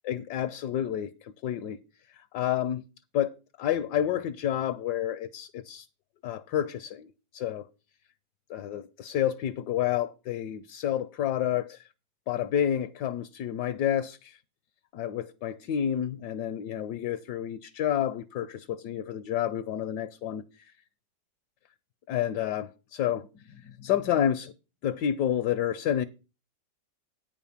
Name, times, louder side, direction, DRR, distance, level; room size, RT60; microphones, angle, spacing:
voice 1, 0.0-1.8 2.1-2.8 3.1-5.9 6.2-7.7 8.5-11.9 12.3-14.4 14.9-20.7 22.1-24.5 24.8-26.0, left 10 dB, 70° left, 1.1 m, -30 dB
9.5 x 5.1 x 7.1 m
omnidirectional pair, 2.0 m